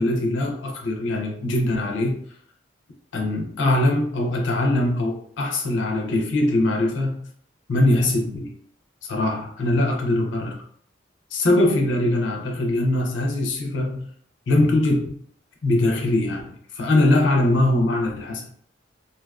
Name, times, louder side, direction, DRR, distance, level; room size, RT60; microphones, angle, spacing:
voice 1, 0.0-2.2 3.1-7.3 7.7-8.5 9.1-10.6 11.3-14.1 14.5-15.1 15.6-16.4 16.8-18.5, left 1 dB, 85° left, 1 dB, 0.5 m, -22 dB
2.5 x 2.2 x 2.3 m, 0.63 s
head